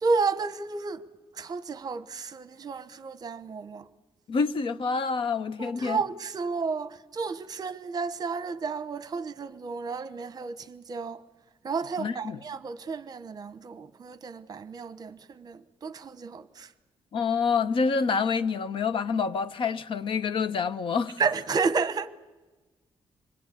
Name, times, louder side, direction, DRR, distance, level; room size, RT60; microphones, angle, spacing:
voice 1, 0.0-1.0 1.4-3.8 5.6-11.2 11.6-16.7 21.2-22.1, right 4 dB, 40° right, 1.0 m, -31 dB
voice 2, 4.3-6.0 12.0-12.4 17.1-21.2, left 5 dB, 60° left, 0.8 m, -27 dB
26.0 x 21.0 x 8.4 m
wide cardioid pair, 145°, 10 cm